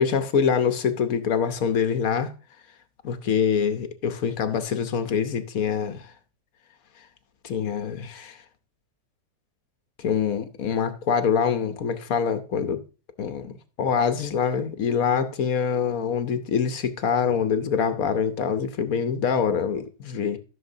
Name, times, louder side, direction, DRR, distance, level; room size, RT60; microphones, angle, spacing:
voice 1, 0.0-2.3 3.0-6.0 7.4-8.4 10.0-12.8 13.2-13.5 13.8-20.4, left 7 dB, 65° left, 1.2 m, -25 dB
14.5 x 6.5 x 2.7 m
omnidirectional pair, 1.7 m